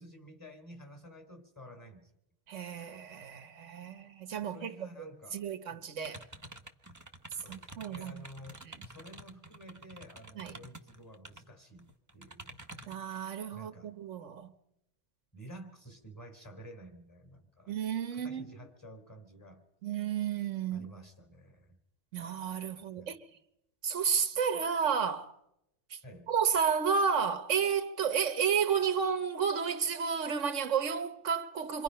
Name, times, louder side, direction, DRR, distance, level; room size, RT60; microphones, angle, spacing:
voice 1, 0.0-2.1 4.4-5.4 5.7-5.9 7.4-12.5 13.5-13.9 15.3-17.8 18.1-19.6 20.7-21.8 22.7-23.1 26.0-26.3, right 1 dB, 15° left, 3.6 m, -51 dB
voice 2, 2.5-6.2 7.5-8.3 8.6-8.8 10.4-10.6 12.9-14.5 17.7-18.4 19.8-20.9 22.1-23.2 23.8-25.3 25.9-26.0 26.3-31.8, right 7 dB, 80° right, 1.4 m, -32 dB
sound 1, 6.0-11.4 11.8-13.1, right 1 dB, 15° right, 1.2 m, -49 dB
28.0 x 25.0 x 5.6 m
omnidirectional pair, 1.2 m